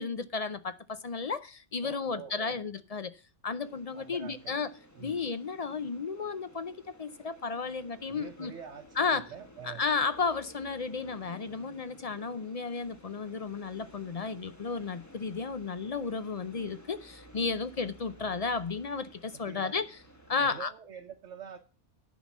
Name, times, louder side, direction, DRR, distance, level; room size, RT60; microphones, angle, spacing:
voice 1, 0.0-4.7 5.0-8.5 9.0-9.3 9.6-19.9 20.3-20.7, left 4 dB, 45° left, 0.5 m, -33 dB
voice 2, 1.8-2.6 3.9-4.7 4.9-5.2 8.1-9.8 18.2-18.4 19.3-19.8 20.4-21.6, right 8 dB, 80° right, 1.3 m, -46 dB
sound 1, 3.6-20.6, equal, 15° left, 1.2 m, -54 dB
9.9 x 5.7 x 7.2 m
omnidirectional pair, 1.2 m